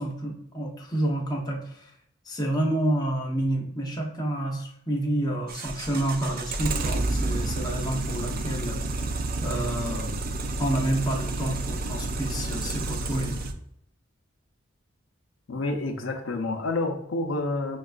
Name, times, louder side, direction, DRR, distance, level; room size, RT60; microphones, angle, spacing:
voice 1, 0.0-1.9 2.3-8.8 9.4-10.1 10.6-13.4, right 1 dB, 20° left, -2 dB, 0.7 m, -29 dB
sound 1, 5.5-13.5, right 2 dB, 45° right, 0.4 m, -30 dB
voice 2, 15.5-17.8, left 2 dB, 75° left, 3 dB, 0.5 m, -29 dB
5.8 x 2.3 x 2.4 m, 0.73 s
head